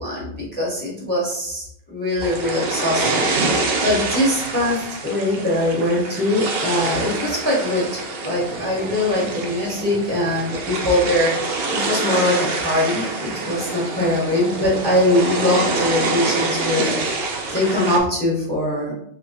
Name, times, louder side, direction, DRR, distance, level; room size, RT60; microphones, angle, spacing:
voice 1, 0.0-7.9 8.2-18.9, left 1 dB, 10° left, -4 dB, 0.8 m, -22 dB
sound 1, 2.2-18.0, right 3 dB, 60° right, 0.7 m, -26 dB
3.8 x 2.7 x 2.8 m, 0.70 s
omnidirectional pair, 1.4 m